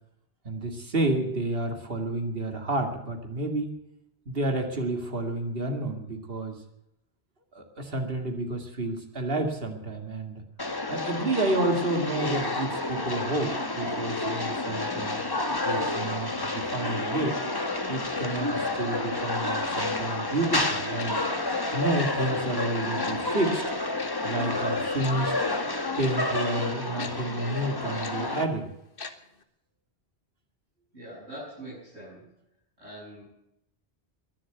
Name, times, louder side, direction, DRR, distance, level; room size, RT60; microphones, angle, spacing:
voice 1, 0.4-3.7 4.3-6.6 7.5-10.4 10.9-15.2 15.6-17.4 17.9-21.2 21.7-23.6 24.2-25.3 26.0-28.7, right 2 dB, 60° right, 4 dB, 2.5 m, -30 dB
sound 1, 10.6-28.4, left 2 dB, 20° left, 1.3 m, -30 dB
Tick-tock, 21.0-21.1 22.0-22.1 23.0-23.2 24.0-24.1 25.0-25.1 26.0-26.1 27.0-27.1 28.0-28.1 29.0-29.1 29.4-29.5, left 4 dB, 55° left, 1.5 m, -39 dB
voice 2, 30.9-32.3 32.8-33.2, right 1 dB, 85° right, -8 dB, 7.8 m, -43 dB
22.0 x 7.7 x 8.1 m, 0.80 s
omnidirectional pair, 1.1 m